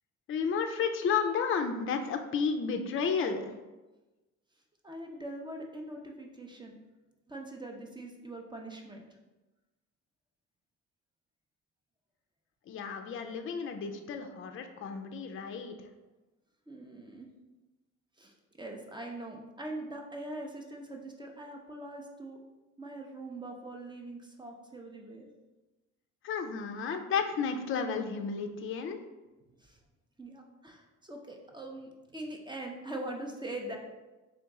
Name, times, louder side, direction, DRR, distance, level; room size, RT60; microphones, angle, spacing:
voice 1, 0.3-3.5 12.7-15.8 26.2-29.0, left 6 dB, 45° left, 6 dB, 0.4 m, -32 dB
voice 2, 4.8-6.8 7.3-9.0 16.7-17.3 18.2-22.4 22.8-25.3 29.6-29.8 30.2-33.8, right 1 dB, 15° right, 1 dB, 0.6 m, -42 dB
3.7 x 2.9 x 3.5 m, 1.1 s
cardioid pair, 90°, 30 cm